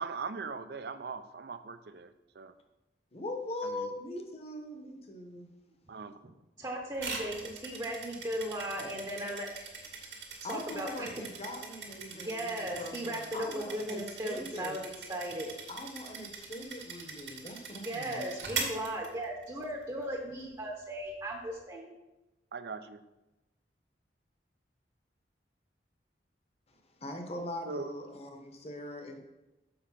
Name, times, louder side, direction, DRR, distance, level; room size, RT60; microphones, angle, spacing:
voice 1, 0.0-2.5 3.6-3.9 5.9-6.1 22.5-23.0 27.6-27.9, right 4 dB, 65° right, 11 dB, 0.5 m, -40 dB
voice 2, 3.1-5.5 10.4-14.8 15.7-18.3 26.7-29.2, left 1 dB, 35° left, 4 dB, 1.0 m, -41 dB
voice 3, 6.6-9.7 10.5-11.1 12.1-14.8 15.1-15.5 17.7-21.9, right 1 dB, 25° right, 1 dB, 0.8 m, -37 dB
sound 1, 7.0-19.6, right 5 dB, 80° right, 1.8 m, -42 dB
7.0 x 4.9 x 5.7 m, 1.0 s
head